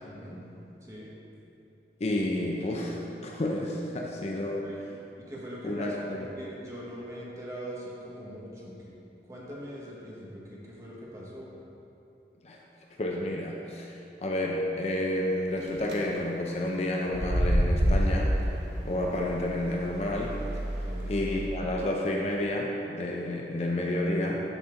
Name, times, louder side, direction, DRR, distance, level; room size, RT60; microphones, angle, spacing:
voice 1, 0.0-0.4 0.8-1.1 4.5-4.8 5.3-8.7 9.3-11.5 20.8-21.1, equal, 15° right, -5 dB, 1.2 m, -41 dB
voice 2, 2.0-4.7 5.6-6.3 12.4-12.6 13.0-20.6 21.1-24.4, left 1 dB, 35° left, -1 dB, 0.5 m, -30 dB
sound 1, 15.6-15.9 17.0-21.4, equal, 80° right, 1.1 m, -28 dB
12.5 x 4.3 x 3.8 m, 2.8 s
head